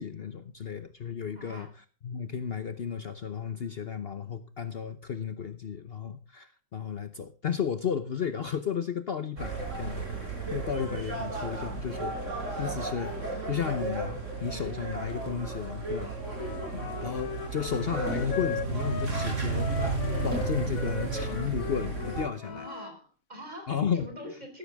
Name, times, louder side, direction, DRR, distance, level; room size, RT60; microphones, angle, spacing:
voice 1, 0.0-1.7 2.0-12.2 12.6-13.1 13.5-16.1 16.7-19.7 20.2-22.6 23.7-24.1, left 7 dB, 70° left, 11 dB, 0.5 m, -33 dB
voice 2, 1.3-1.7 12.5-12.9 22.4-23.7 24.0-24.6, equal, 20° right, 4 dB, 4.7 m, -44 dB
sound 1, 9.4-22.2, right 3 dB, 35° right, 5.0 m, -33 dB
Wind instrument woodwind instrument, 16.3-22.9, left 8 dB, 50° left, 1.3 m, -39 dB
14.5 x 13.5 x 3.5 m, 0.35 s
omnidirectional pair, 2.3 m